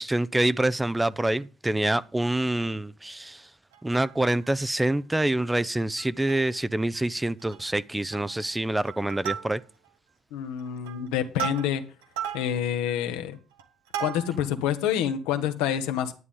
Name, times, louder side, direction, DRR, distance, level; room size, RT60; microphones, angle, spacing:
voice 1, 0.0-3.4 3.8-9.6, right 1 dB, 15° right, 0.6 m, -26 dB
Plucked string instrument, 3.7-4.5 5.0-5.1 5.3-5.5 6.0-6.6 6.9-7.1 7.4-7.8 8.1-8.5 8.9-9.9 10.4-14.6 15.1-15.2, right 10 dB, 85° right, 1.4 m, -37 dB
voice 2, 10.3-11.8 12.3-13.4 14.0-16.1, left 9 dB, 80° left, 1.2 m, -27 dB
11.0 x 9.6 x 3.8 m
hypercardioid pair, 50°, 0 cm